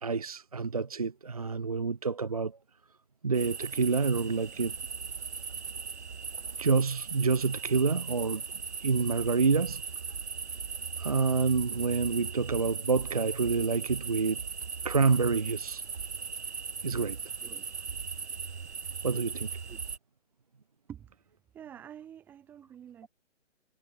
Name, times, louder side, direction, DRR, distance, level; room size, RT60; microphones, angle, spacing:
voice 1, 0.0-2.6 3.2-4.8 6.6-8.4 8.8-9.8 11.0-14.4 14.8-15.8 16.8-17.2 19.0-19.5, right 4 dB, 30° right, 0.8 m, -28 dB
sound 1, 3.3-20.0, right 5 dB, 60° right, 6.9 m, -38 dB
voice 2, 21.5-23.1, right 9 dB, 5° right, 2.4 m, -48 dB
hypercardioid pair, 175°, 37 cm